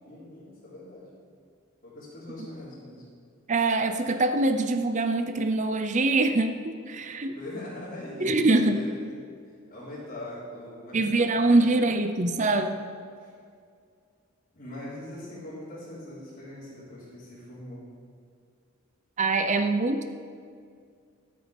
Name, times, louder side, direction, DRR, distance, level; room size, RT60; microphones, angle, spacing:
voice 1, 0.0-1.1 1.8-3.0 7.2-8.9 9.7-11.3 11.6-11.7 13.2-13.3 14.5-17.8, left 1 dB, 45° left, -12 dB, 3.6 m, -41 dB
voice 2, 3.5-7.4 8.2-8.8 10.9-12.8 19.2-20.0, right 2 dB, 35° right, 7 dB, 0.6 m, -24 dB
13.0 x 8.4 x 5.1 m, 2.2 s
head